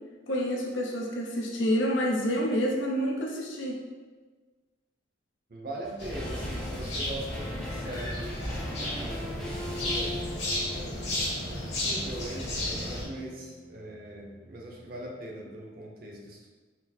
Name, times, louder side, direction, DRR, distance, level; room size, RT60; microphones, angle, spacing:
voice 1, 0.3-3.8, equal, 80° left, -1 dB, 0.7 m, -28 dB
voice 2, 5.5-8.4 8.8-10.2 10.6-11.1 11.5-16.5, right 1 dB, 50° right, -2 dB, 0.7 m, -41 dB
sound 1, 5.8-15.2 15.5-15.6, left 1 dB, 5° left, 0.4 m, -42 dB
sound 2, 6.0-13.0, left 1 dB, 65° left, 1.4 m, -33 dB
4.4 x 2.0 x 4.2 m, 1.4 s
head